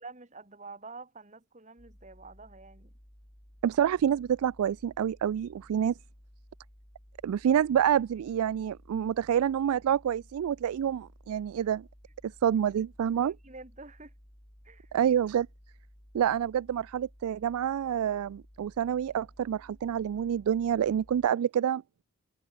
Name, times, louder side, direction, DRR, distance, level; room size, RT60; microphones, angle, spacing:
voice 1, 0.0-2.9 13.2-14.1 14.6-14.9, right 3 dB, 35° right, 2.3 m, -48 dB
sound 1, 1.8-21.3, equal, 25° left, 5.5 m, -56 dB
voice 2, 3.6-5.9 7.2-11.9 12.4-13.3 14.9-15.5 16.1-21.8, right 9 dB, 85° right, 0.3 m, -27 dB
head